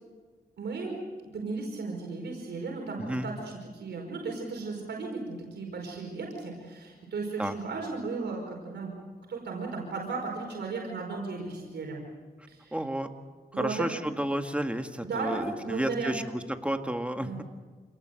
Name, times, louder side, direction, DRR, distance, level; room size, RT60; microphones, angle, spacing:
voice 1, 0.6-0.9 1.3-8.9 9.3-12.0 12.5-12.8 13.5-13.9 15.0-16.2 17.2-17.4, right 4 dB, 90° right, 0 dB, 4.9 m, -35 dB
voice 2, 3.0-3.3 7.4-7.5 12.7-13.1 13.6-17.4, right 1 dB, 5° right, 6 dB, 1.9 m, -31 dB
27.5 x 19.0 x 7.9 m, 1.4 s
wide cardioid pair, 85°, 17 cm